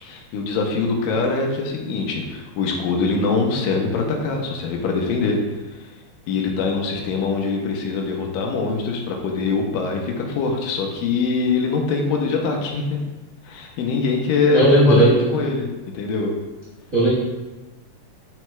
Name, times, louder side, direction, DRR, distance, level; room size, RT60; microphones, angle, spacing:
voice 1, 0.0-5.4 5.8-5.9 6.3-13.0 13.5-15.7 15.9-16.3, left 4 dB, 85° left, 1 dB, 2.4 m, -23 dB
voice 2, 14.5-15.3 16.9-17.1, right 1 dB, 55° right, -10 dB, 0.9 m, -15 dB
7.7 x 6.1 x 2.3 m, 1.2 s
omnidirectional pair, 3.8 m